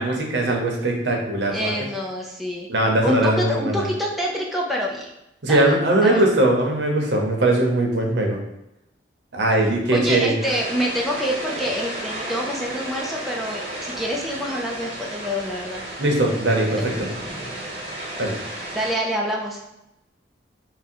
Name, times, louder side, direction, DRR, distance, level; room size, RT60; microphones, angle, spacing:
voice 1, 0.0-1.9 2.7-3.9 5.4-8.4 9.3-10.3 16.0-17.1 18.2-18.3, right 1 dB, 75° right, 0 dB, 0.8 m, -20 dB
voice 2, 1.5-2.7 3.0-5.1 5.5-5.7 6.0-6.2 9.9-15.9 18.7-19.6, equal, ahead, -2 dB, 0.4 m, -26 dB
sound 1, 10.4-18.9, right 1 dB, 35° right, 0.8 m, -33 dB
3.5 x 2.1 x 4.3 m, 0.89 s
head